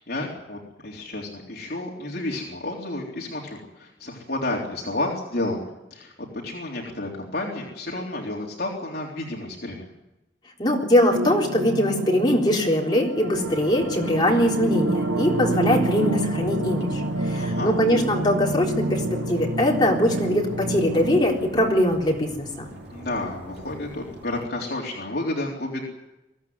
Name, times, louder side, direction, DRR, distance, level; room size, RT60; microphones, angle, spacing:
voice 1, 0.0-9.9 17.3-17.7 22.9-25.9, left 2 dB, 55° left, -2 dB, 3.8 m, -31 dB
voice 2, 10.6-19.0 19.3-22.7, left 1 dB, 25° left, -2 dB, 4.0 m, -22 dB
sound 1, 11.1-21.2, right 1 dB, 80° right, 1.6 m, -28 dB
sound 2, 13.3-24.5, right 1 dB, 60° right, 4.9 m, -43 dB
23.0 x 16.5 x 9.6 m, 0.93 s
head